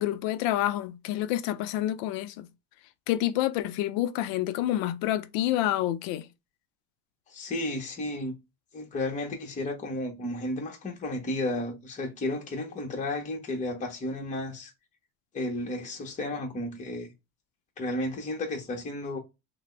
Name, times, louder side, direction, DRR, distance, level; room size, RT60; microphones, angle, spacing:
voice 1, 0.0-2.5 3.1-6.3, left 13 dB, 75° left, 0.5 m, -28 dB
voice 2, 7.3-8.4 8.7-14.7 15.3-17.1 17.8-19.2, left 1 dB, 20° left, 0.8 m, -33 dB
3.3 x 2.0 x 3.1 m
cardioid pair, 130°, 35 cm